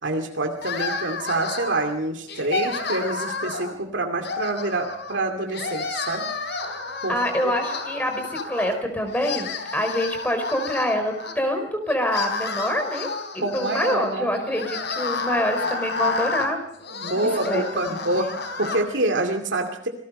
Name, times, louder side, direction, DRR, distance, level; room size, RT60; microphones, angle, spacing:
voice 1, 0.0-6.2 7.0-7.2 13.4-14.4 17.0-18.3 18.6-19.9, right 2 dB, 65° right, 3 dB, 2.5 m, -26 dB
sound 1, 0.6-1.9 2.3-3.7 4.2-5.2 5.5-8.8 9.1-11.3 11.9-18.8, left 3 dB, 60° left, 3.9 m, -30 dB
voice 2, 7.1-13.1 13.3-16.6 17.1-18.4, equal, 10° left, 6 dB, 4.3 m, -26 dB
27.5 x 19.5 x 5.5 m, 0.71 s
head